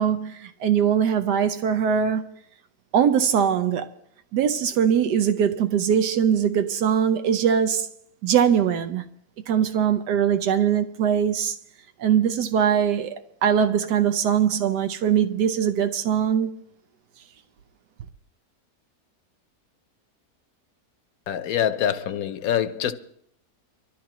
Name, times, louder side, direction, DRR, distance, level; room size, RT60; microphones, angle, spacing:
voice 1, 0.0-2.3 2.9-3.9 4.3-7.9 8.2-9.0 9.5-11.6 12.0-13.1 13.4-16.5, right 8 dB, 90° right, 1.3 m, -21 dB
voice 2, 21.3-22.9, left 10 dB, 70° left, 1.1 m, -25 dB
24.0 x 13.5 x 3.0 m
omnidirectional pair, 1.7 m